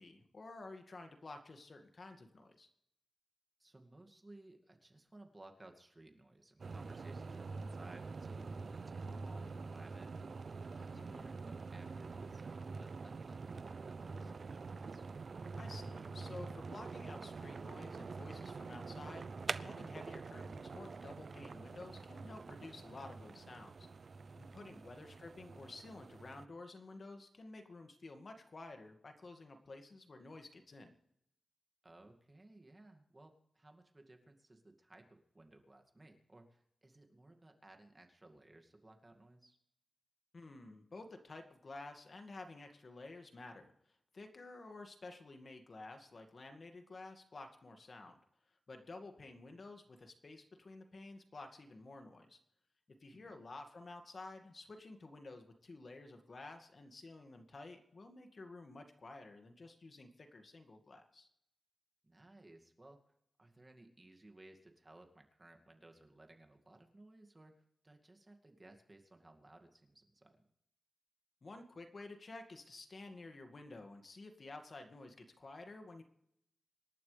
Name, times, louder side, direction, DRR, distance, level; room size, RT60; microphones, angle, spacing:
voice 1, 0.0-2.7 10.9-11.3 15.5-23.9 24.4-30.9 40.3-43.7 44.1-48.2 48.7-52.4 53.0-61.3 71.4-76.0, left 2 dB, 50° left, 5 dB, 2.1 m, -52 dB
voice 2, 3.6-10.2 10.6-15.0 24.6-24.9 31.8-39.6 53.1-53.4 62.0-63.0 63.4-70.5, right 2 dB, 25° right, 3 dB, 2.3 m, -60 dB
sound 1, 6.6-26.5, right 4 dB, 60° right, 0.6 m, -46 dB
26.0 x 12.0 x 3.4 m, 0.75 s
wide cardioid pair, 90°, 0 cm